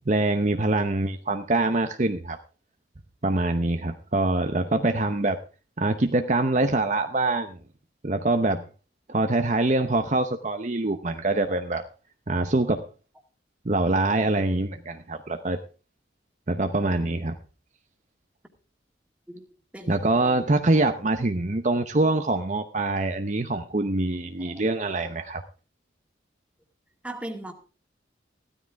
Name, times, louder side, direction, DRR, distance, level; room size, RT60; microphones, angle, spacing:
voice 1, 0.1-2.4 3.2-5.4 5.8-7.6 8.0-8.6 9.1-11.8 12.3-12.8 13.6-15.6 16.5-17.4 19.9-25.4, right 2 dB, 40° right, 0.8 m, -24 dB
voice 2, 27.0-27.5, right 1 dB, 5° right, 2.1 m, -37 dB
15.5 x 13.0 x 3.5 m
head